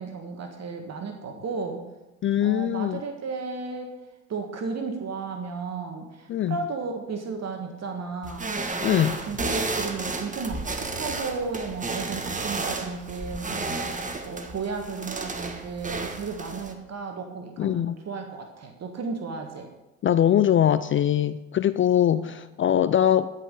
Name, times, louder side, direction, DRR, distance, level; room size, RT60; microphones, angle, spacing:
voice 1, 0.0-1.8 2.4-4.0 4.3-8.5 8.9-19.7 22.1-22.3, right 4 dB, 45° right, 4 dB, 1.6 m, -34 dB
voice 2, 2.2-3.0 6.3-6.6 8.8-9.2 17.6-18.0 20.0-23.3, left 10 dB, 35° left, 14 dB, 0.4 m, -22 dB
sound 1, 8.2-16.7, right 3 dB, 20° right, 1.4 m, -32 dB
12.5 x 5.8 x 6.5 m, 1.0 s
hypercardioid pair, 65°, 38 cm